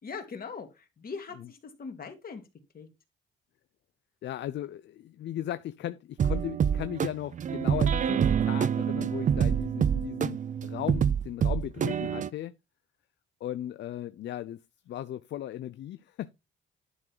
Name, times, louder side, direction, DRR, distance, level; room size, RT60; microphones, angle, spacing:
voice 1, 0.0-2.4 2.7-2.9, left 5 dB, 45° left, 2.5 m, -41 dB
voice 2, 4.2-12.6 13.4-14.6 14.9-16.3, left 12 dB, 65° left, 0.5 m, -37 dB
sound 1, 6.2-12.3, right 8 dB, 40° right, 0.5 m, -26 dB
11.0 x 3.8 x 4.6 m
cardioid pair, 90°, 20 cm